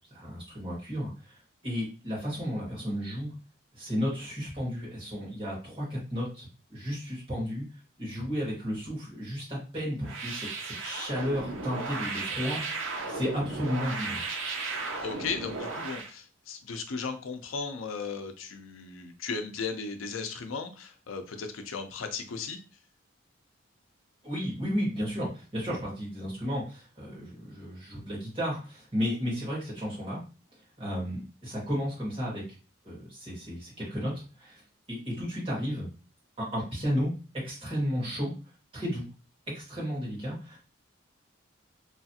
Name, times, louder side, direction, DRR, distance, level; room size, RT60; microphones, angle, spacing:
voice 1, 0.1-1.4 1.6-3.3 3.7-7.6 8.0-14.2 24.2-30.2 30.8-32.4 32.8-34.6 34.9-35.9 36.4-37.1 37.4-38.3 38.7-39.1 39.5-40.6, equal, 25° right, -6 dB, 1.6 m, -33 dB
sound 1, 10.0-16.1, right 3 dB, 80° right, 0.7 m, -35 dB
voice 2, 15.0-22.6, left 5 dB, 90° left, 6 dB, 0.5 m, -36 dB
3.1 x 2.4 x 2.7 m, 0.34 s
head